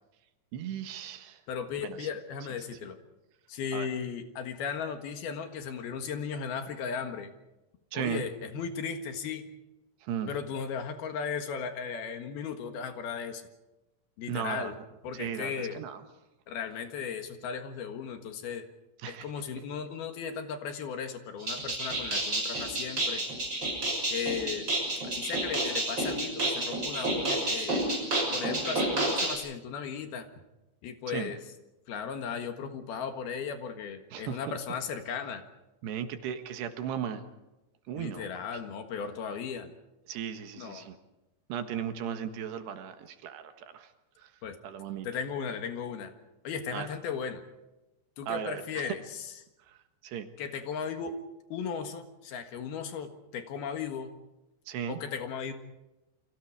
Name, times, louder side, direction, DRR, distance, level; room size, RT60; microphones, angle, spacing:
voice 1, 0.5-1.4 1.8-2.1 3.7-3.9 7.9-8.2 10.0-10.3 14.3-14.7 15.1-16.0 19.0-19.3 31.1-31.3 34.1-34.4 35.8-37.2 37.9-38.2 40.1-41.0 41.5-43.9 44.6-45.1 46.7-46.9 48.3-48.9 50.0-50.3 54.7-55.0, right 8 dB, 75° right, 8 dB, 3.5 m, -36 dB
voice 2, 1.5-3.0 3.5-7.3 7.9-9.5 10.3-13.4 14.2-14.8 15.0-15.8 16.5-18.7 19.1-23.2 24.1-24.7 25.0-27.8 28.3-30.3 30.8-31.4 31.9-35.4 38.0-39.7 40.6-40.9 44.4-44.6 45.0-46.1 46.4-47.4 48.2-49.3 50.4-51.1 51.5-54.1 54.9-55.5, left 6 dB, 65° left, 7 dB, 3.3 m, -36 dB
sound 1, 21.4-29.3, right 1 dB, 25° right, 6.7 m, -30 dB
29.5 x 24.0 x 4.9 m, 0.99 s
omnidirectional pair, 5.0 m